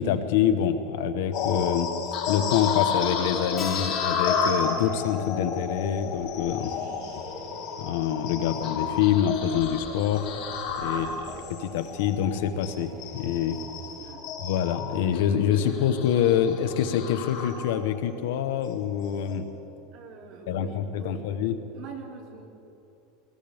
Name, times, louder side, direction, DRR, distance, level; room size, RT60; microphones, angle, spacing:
voice 1, 0.0-1.9 2.3-6.7 7.8-10.2 10.8-11.1 11.6-13.6 14.4-19.5 20.5-21.6, left 9 dB, 75° left, 9 dB, 1.0 m, -26 dB
sound 1, 1.3-18.0 18.4-18.7 19.2-19.4, left 5 dB, 50° left, 2.6 m, -32 dB
Keyboard (musical), 3.6-8.8, left 6 dB, 20° left, 1.5 m, -40 dB
sound 2, 6.0-14.1, right 3 dB, 75° right, 3.3 m, -47 dB
voice 2, 6.6-7.0 10.9-11.3 14.0-14.3 15.2-15.9 19.9-22.5, right 6 dB, 45° right, -1 dB, 2.7 m, -46 dB
21.0 x 19.5 x 3.5 m, 2.8 s
supercardioid pair, 165°, 0 cm